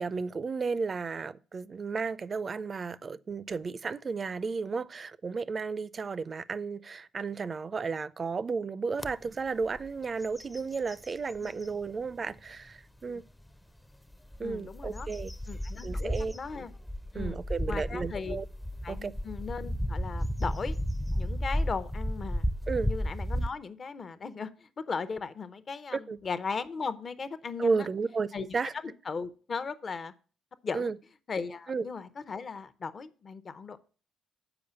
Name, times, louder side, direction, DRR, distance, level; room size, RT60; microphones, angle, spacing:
voice 1, 0.0-13.2 14.4-15.3 15.8-16.3 17.1-18.4 18.9-19.1 22.7-22.9 25.9-26.2 27.6-28.3 28.5-28.7 30.7-31.0 31.7-31.9, right 4 dB, 40° right, 0.4 m, -33 dB
sound 1, 9.0-9.1 9.6-9.9 10.2-11.7 12.3-12.4 14.1-23.5, equal, 15° left, 0.5 m, -33 dB
voice 2, 14.4-15.1 15.5-16.7 17.1-17.4 17.7-18.4 18.8-20.8 21.2-22.4 22.9-27.9 28.3-28.4 29.1-30.1 30.6-30.9 31.3-33.8, left 5 dB, 45° left, 0.7 m, -37 dB
7.0 x 5.0 x 6.8 m
hypercardioid pair, 55°, 0 cm